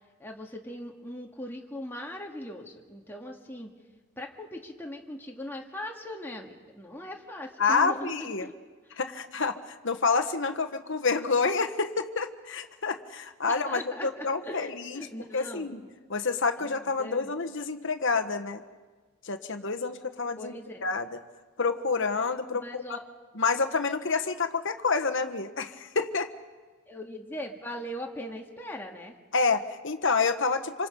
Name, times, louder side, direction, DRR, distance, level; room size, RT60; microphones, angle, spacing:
voice 1, 0.2-3.7 4.2-8.5 13.5-15.9 16.6-17.3 20.4-20.9 22.6-23.0 26.9-29.1, left 1 dB, 10° left, 0 dB, 2.0 m, -40 dB
voice 2, 7.6-8.5 9.0-15.1 15.3-15.8 16.1-18.6 19.2-20.5 20.8-21.1 21.6-22.8 23.3-26.3 29.3-30.9, left 4 dB, 55° left, 7 dB, 1.3 m, -28 dB
27.0 x 26.5 x 5.4 m, 1.4 s
head